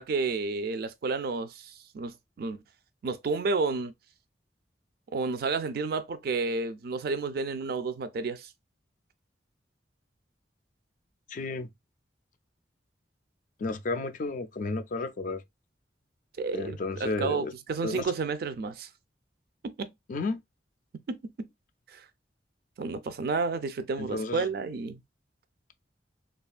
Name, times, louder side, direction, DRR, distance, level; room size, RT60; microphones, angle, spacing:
voice 1, 0.0-2.6 3.0-3.9 5.1-8.5 16.4-18.9 19.6-19.9 21.1-21.5 21.9-22.0 22.8-25.0, right 4 dB, 55° right, 0.4 m, -31 dB
voice 2, 11.3-11.7 13.6-15.4 16.5-17.5 17.8-18.1 20.1-20.4 24.0-24.5, left 3 dB, 45° left, 0.3 m, -32 dB
3.0 x 2.3 x 2.3 m
head